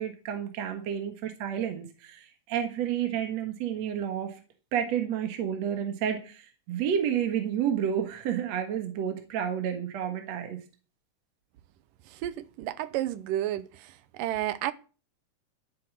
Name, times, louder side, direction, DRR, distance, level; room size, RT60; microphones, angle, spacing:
voice 1, 0.0-4.3 4.7-10.6, right 9 dB, 60° right, 2.5 m, -30 dB
voice 2, 12.2-13.7 14.2-14.7, right 13 dB, 85° right, 2.4 m, -31 dB
12.5 x 8.7 x 6.2 m
omnidirectional pair, 3.8 m